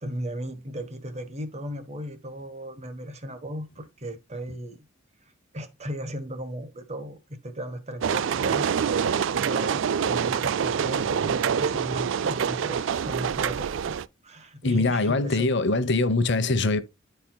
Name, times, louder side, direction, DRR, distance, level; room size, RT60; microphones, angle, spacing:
voice 1, 0.0-4.8 5.5-15.5, equal, 35° right, 1.2 m, -36 dB
sound 1, 8.0-14.1, right 7 dB, 70° right, 0.4 m, -26 dB
voice 2, 14.6-16.8, left 3 dB, 65° left, 0.9 m, -23 dB
13.5 x 4.5 x 2.2 m
head